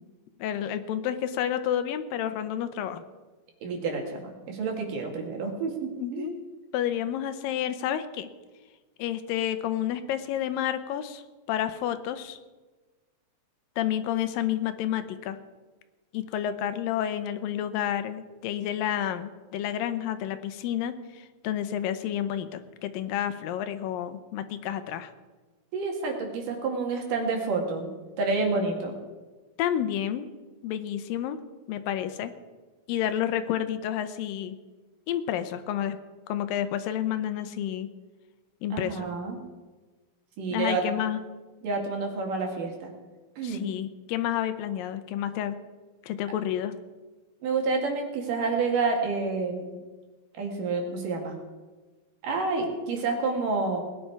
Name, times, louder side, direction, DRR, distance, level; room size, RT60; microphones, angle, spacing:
voice 1, 0.4-3.0 6.0-6.3 6.7-8.3 9.0-11.2 11.5-12.4 13.8-15.4 16.1-25.1 29.6-30.3 30.6-31.4 31.7-32.3 32.9-34.6 35.1-36.0 36.3-37.9 38.6-39.1 40.5-41.2 43.4-45.6 46.0-46.8, left 10 dB, 85° left, 10 dB, 2.5 m, -30 dB
voice 2, 3.6-6.3 25.7-27.9 28.2-29.0 38.7-39.4 40.4-40.8 41.6-42.9 43.4-43.7 47.4-49.8 50.3-51.4 52.2-53.8, right 4 dB, 70° right, 2 dB, 3.5 m, -29 dB
19.0 x 10.0 x 4.7 m, 1.3 s
omnidirectional pair, 4.0 m